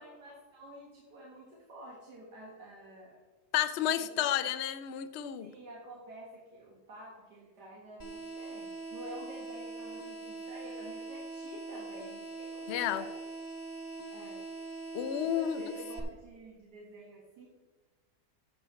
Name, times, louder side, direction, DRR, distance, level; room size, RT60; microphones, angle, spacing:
voice 1, 0.0-3.2 4.0-4.3 5.4-13.1 14.1-14.5 15.3-17.5, right 1 dB, 85° right, -3 dB, 2.2 m, -49 dB
voice 2, 3.5-5.5 12.7-13.0 14.9-15.6, left 11 dB, 60° left, 11 dB, 0.7 m, -31 dB
sound 1, 8.0-16.0, right 3 dB, 15° left, 1.2 m, -42 dB
13.0 x 7.4 x 3.2 m, 1.3 s
omnidirectional pair, 1.7 m